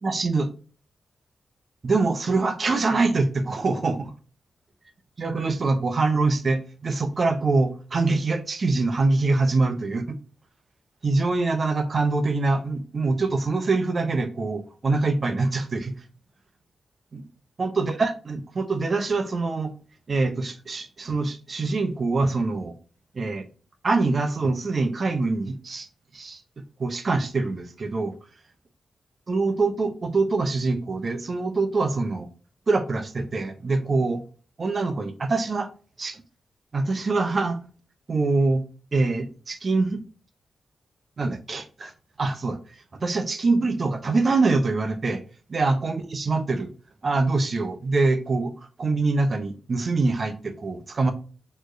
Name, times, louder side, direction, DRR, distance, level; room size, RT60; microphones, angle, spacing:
voice 1, 0.0-0.5 1.8-4.0 5.2-10.2 11.0-16.0 17.1-17.2 17.6-19.7 20.1-22.7 23.1-23.5 23.8-25.9 26.1-28.2 29.3-32.3 32.7-34.2 34.6-35.7 36.0-36.2 36.7-37.6 38.1-38.6 38.9-40.1 41.2-41.9 42.2-45.2 45.5-46.7 47.0-51.1, right 3 dB, 50° right, 0.8 m, -24 dB
4.2 x 3.1 x 2.7 m
cardioid pair, 55°, 0 cm